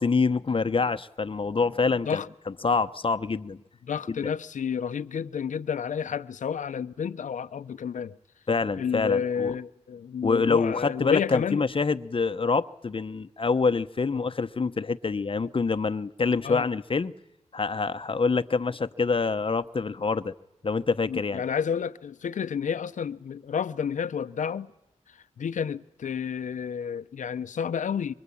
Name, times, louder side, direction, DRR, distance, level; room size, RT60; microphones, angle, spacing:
voice 1, 0.0-2.2 2.5-3.6 4.1-4.2 8.5-9.6 10.2-17.1 17.5-20.3 20.6-21.4, left 4 dB, 45° left, 1.0 m, -26 dB
voice 2, 3.8-8.2 8.8-11.6 14.1-14.2 16.4-16.7 21.1-24.7 25.4-28.1, left 7 dB, 85° left, 0.9 m, -30 dB
25.5 x 24.0 x 8.6 m
cardioid pair, 60°, 13 cm